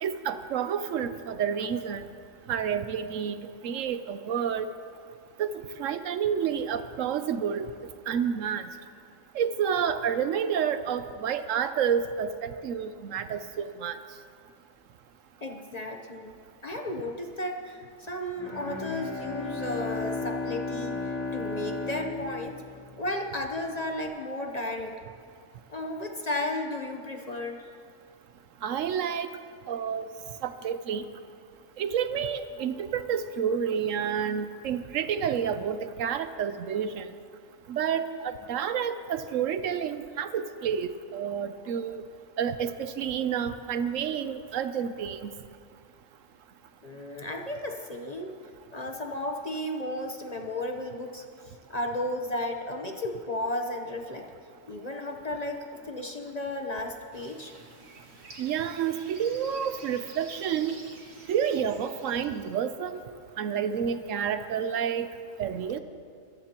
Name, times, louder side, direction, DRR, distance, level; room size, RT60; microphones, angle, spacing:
voice 1, 0.0-2.0 2.5-3.4 3.6-4.7 5.4-7.7 8.1-8.7 9.3-14.0 28.6-29.3 29.7-30.1 30.4-31.0 31.8-37.1 37.7-42.0 42.4-45.3 58.4-60.8 61.3-63.0 63.4-65.1 65.4-65.8, right 8 dB, 75° right, 11 dB, 1.0 m, -29 dB
voice 2, 15.4-16.3 16.6-22.6 23.0-25.0 25.7-27.7 46.8-48.3 48.7-54.3 54.7-57.5, left 1 dB, 35° left, 3 dB, 0.9 m, -34 dB
Bowed string instrument, 18.3-23.3, left 3 dB, 10° left, 4.6 m, -34 dB
sound 1, 57.1-62.6, right 2 dB, 55° right, 1.7 m, -50 dB
23.0 x 14.5 x 2.9 m, 2.2 s
omnidirectional pair, 1.4 m